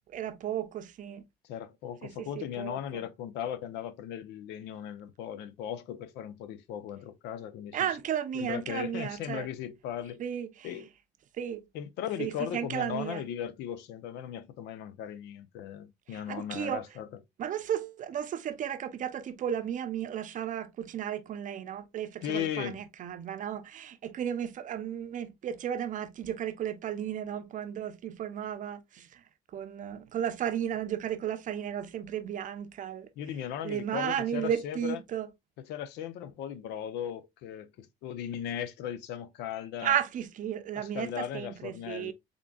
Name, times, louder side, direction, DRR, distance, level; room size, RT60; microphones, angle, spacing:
voice 1, 0.1-1.2 2.0-3.0 7.7-9.5 10.2-10.7 11.4-11.6 12.2-13.2 16.1-16.8 17.4-29.2 29.5-33.1 33.6-35.3 39.8-42.1, right 9 dB, 50° right, 0.6 m, -34 dB
voice 2, 1.5-7.9 8.3-10.2 10.6-10.9 11.7-17.1 22.2-22.8 33.2-35.0 35.6-39.9 40.7-42.1, left 10 dB, 85° left, 0.6 m, -37 dB
3.7 x 3.6 x 2.2 m
cardioid pair, 110°, 17 cm